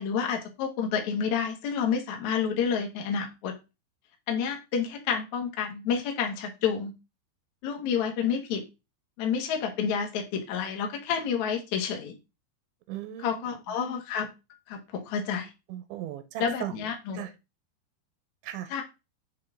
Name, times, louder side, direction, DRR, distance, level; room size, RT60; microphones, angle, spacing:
voice 1, 0.0-3.5 4.3-6.9 7.6-8.6 9.2-12.1 13.2-14.3 14.7-15.5 16.4-17.3 18.7-18.8, left 7 dB, 65° left, 3 dB, 1.9 m, -29 dB
voice 2, 12.9-13.6 15.7-16.7 17.1-17.3 18.4-18.7, right 12 dB, 85° right, 9 dB, 3.1 m, -37 dB
7.8 x 5.6 x 3.7 m, 0.26 s
omnidirectional pair, 5.4 m